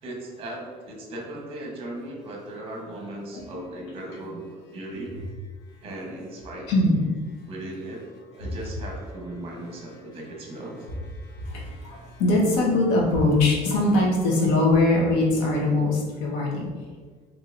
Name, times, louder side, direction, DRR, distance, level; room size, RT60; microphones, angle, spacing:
voice 1, 0.0-5.1 5.8-6.6 7.5-8.0 8.3-10.9, right 1 dB, 40° right, 0 dB, 0.9 m, -37 dB
voice 2, 11.2-16.7, left 2 dB, 90° left, -2 dB, 1.0 m, -22 dB
4.5 x 2.8 x 2.5 m, 1.5 s
cardioid pair, 140°, 15 cm